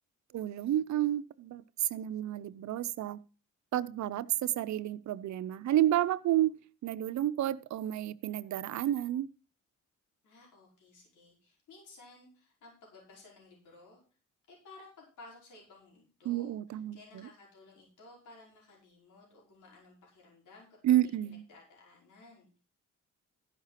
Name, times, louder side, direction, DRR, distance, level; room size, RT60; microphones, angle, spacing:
voice 1, 0.3-3.2 3.7-6.6 6.8-9.3 16.2-17.3 20.8-21.4, right 12 dB, 65° right, 0.7 m, -30 dB
voice 2, 10.2-14.0 14.5-20.7 21.0-22.6, left 3 dB, 80° left, 5.3 m, -56 dB
13.5 x 5.8 x 5.8 m
cardioid pair, 90°, 30 cm